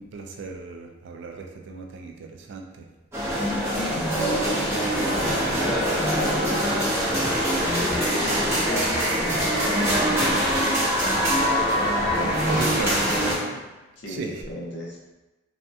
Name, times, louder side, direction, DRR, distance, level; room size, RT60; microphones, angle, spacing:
voice 1, 0.0-2.9 12.2-13.1 14.1-14.4, right 4 dB, 55° right, 2 dB, 0.3 m, -35 dB
sound 1, 3.1-13.3, equal, 10° right, 0.6 m, -23 dB
voice 2, 3.7-5.2 5.9-7.1 8.2-9.9 11.7-12.9 13.4-13.6 14.0-15.0, left 1 dB, 55° left, -3 dB, 0.6 m, -36 dB
3.4 x 2.1 x 2.6 m, 1.1 s
head